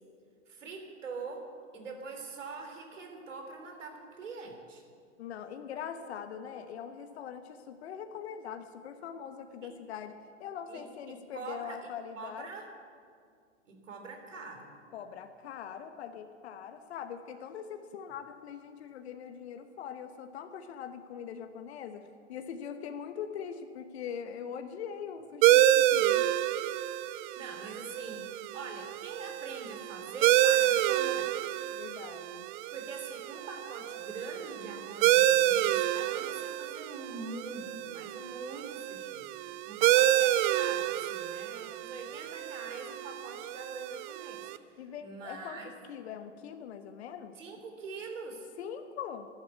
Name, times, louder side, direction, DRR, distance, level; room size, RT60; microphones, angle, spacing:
voice 1, 0.5-4.8 9.6-9.7 10.7-11.8 12.2-12.7 13.6-14.8 27.0-31.3 32.7-39.3 39.7-45.7 47.4-48.5, right 4 dB, 75° right, 4 dB, 3.2 m, -44 dB
voice 2, 5.2-12.5 14.9-26.3 31.7-32.5 44.8-47.4 48.6-49.3, left 8 dB, 55° left, 7 dB, 1.1 m, -42 dB
sound 1, 25.4-44.6, right 13 dB, 40° right, 0.5 m, -28 dB
14.0 x 11.5 x 8.4 m, 2.2 s
hypercardioid pair, 110°, 38 cm